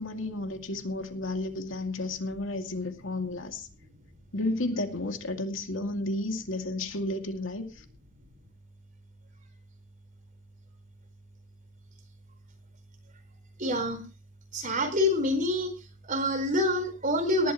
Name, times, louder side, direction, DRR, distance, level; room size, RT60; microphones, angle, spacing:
voice 1, 0.0-3.7 4.3-7.8, left 2 dB, 75° left, 5 dB, 2.4 m, -32 dB
voice 2, 13.6-14.0 14.5-15.7 16.1-17.5, left 1 dB, 40° right, 6 dB, 4.4 m, -26 dB
19.0 x 12.0 x 3.1 m, 0.33 s
head